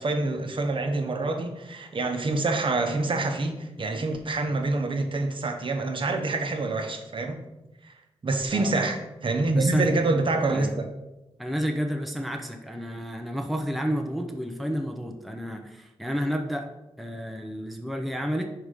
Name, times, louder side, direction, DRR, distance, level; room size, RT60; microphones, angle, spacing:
voice 1, 0.0-7.4 7.8-7.9 8.2-10.7, right 2 dB, 50° right, 5 dB, 0.9 m, -26 dB
voice 2, 9.5-9.9 10.5-10.7 11.4-16.7 17.0-18.5, equal, ahead, 4 dB, 0.6 m, -31 dB
5.9 x 4.8 x 5.1 m, 0.98 s
wide cardioid pair, 105°, 11 cm